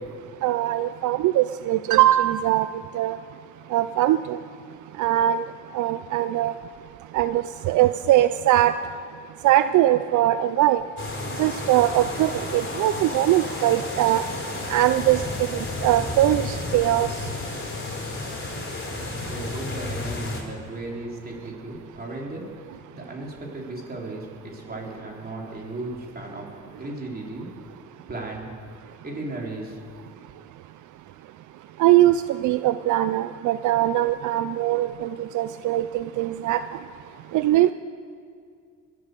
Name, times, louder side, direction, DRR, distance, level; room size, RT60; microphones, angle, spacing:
voice 1, 0.4-2.7 2.9-3.2 3.7-4.4 5.0-5.4 5.7-6.5 7.1-8.7 9.4-10.8 11.4-14.2 14.7-15.2 15.5-17.1 31.8-36.6 37.3-37.7, right 13 dB, 75° right, 12 dB, 0.5 m, -21 dB
sound 1, 11.0-20.4, left 2 dB, 40° left, 3.6 m, -32 dB
voice 2, 19.2-26.5 26.8-27.5 28.1-28.5 29.0-29.8, right 2 dB, 30° right, -1 dB, 3.8 m, -35 dB
21.5 x 8.6 x 6.7 m, 2.3 s
cardioid pair, 90°, 30 cm